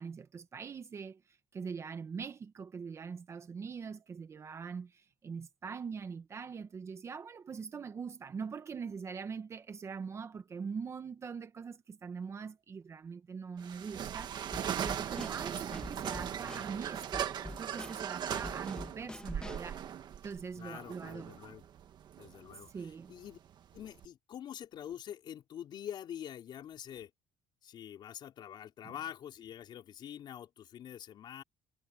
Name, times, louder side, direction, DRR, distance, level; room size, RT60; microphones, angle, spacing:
voice 1, 0.0-14.3 14.8-19.8 20.2-21.3 22.7-23.1 28.8-28.9, right 6 dB, 25° right, 1.1 m, -43 dB
sound 1, 13.6-24.1, right 9 dB, 45° right, 1.6 m, -39 dB
Drum kit / Snare drum, 14.5-19.7, left 2 dB, 10° left, 2.0 m, -46 dB
voice 2, 20.6-21.6 22.2-23.4 23.7-27.1 27.6-31.4, left 10 dB, 45° left, 4.2 m, -46 dB
cardioid pair, 155°, 11 cm